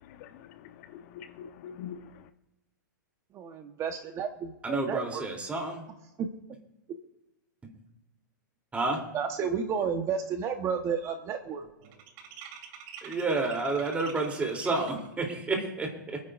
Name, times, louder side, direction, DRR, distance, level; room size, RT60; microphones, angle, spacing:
voice 1, 0.0-2.3, left 8 dB, 50° left, 0.9 m, -45 dB
voice 2, 3.3-5.2 6.2-6.3 9.1-11.6, right 6 dB, 30° right, 1.2 m, -31 dB
voice 3, 4.6-5.9 8.7-9.1 13.0-16.2, right 3 dB, 15° right, 3.2 m, -30 dB
sound 1, 10.0-10.2 10.5-15.1, right 8 dB, 45° right, 2.5 m, -47 dB
26.5 x 9.7 x 2.6 m
hypercardioid pair, 125°, 10 cm